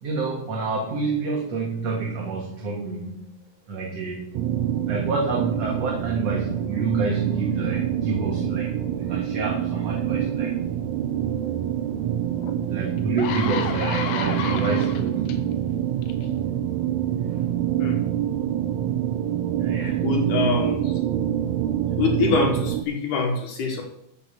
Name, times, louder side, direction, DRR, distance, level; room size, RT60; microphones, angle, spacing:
voice 1, 0.0-3.2 3.7-4.4 4.9-10.5 12.7-15.4 16.7-16.8 17.2-17.5 19.6-20.1, right 3 dB, 55° right, -1 dB, 2.6 m, -28 dB
sound 1, 4.3-22.8, right 10 dB, 85° right, 1.5 m, -26 dB
sound 2, 12.4-12.5 13.0-15.3 16.0-16.2, left 6 dB, 85° left, 2.7 m, -31 dB
voice 2, 20.0-20.9 22.0-23.8, left 4 dB, 70° left, 1 dB, 2.9 m, -24 dB
13.5 x 5.4 x 7.3 m, 0.74 s
omnidirectional pair, 3.9 m